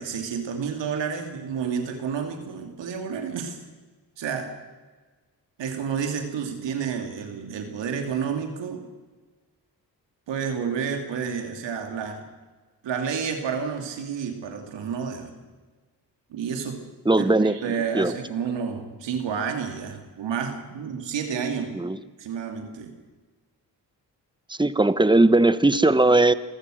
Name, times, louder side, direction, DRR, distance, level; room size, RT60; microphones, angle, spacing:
voice 1, 0.0-3.6 4.2-4.5 5.6-8.8 10.3-12.3 12.8-15.3 16.3-16.8 17.2-21.7 22.2-22.9, right 6 dB, 85° right, 4 dB, 2.8 m, -30 dB
voice 2, 17.0-18.1 21.8-22.0 24.6-26.3, right 2 dB, 10° right, 14 dB, 1.2 m, -19 dB
27.5 x 15.0 x 6.5 m, 1.3 s
supercardioid pair, 50°, 42 cm